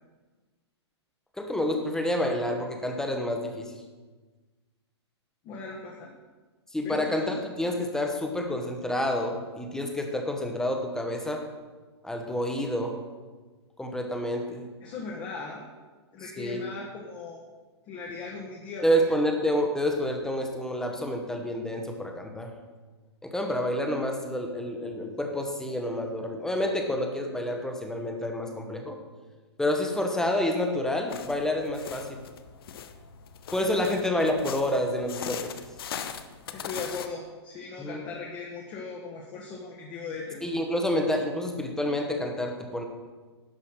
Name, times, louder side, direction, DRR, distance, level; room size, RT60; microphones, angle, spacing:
voice 1, 1.4-3.7 6.7-11.4 12.0-13.0 13.8-14.7 16.4-16.6 18.8-22.5 23.2-29.0 29.6-32.2 33.5-35.5 37.8-38.0 40.4-42.8, left 1 dB, 5° left, 3 dB, 1.2 m, -28 dB
voice 2, 5.4-6.1 6.8-7.2 14.8-15.7 16.1-17.4 17.9-19.0 33.7-33.9 36.5-40.4, left 4 dB, 30° left, -2 dB, 1.4 m, -38 dB
sound 1, 31.1-37.1, left 8 dB, 55° left, 0.7 m, -40 dB
11.0 x 5.6 x 6.1 m, 1.3 s
figure-of-eight pair, 115°, 15 cm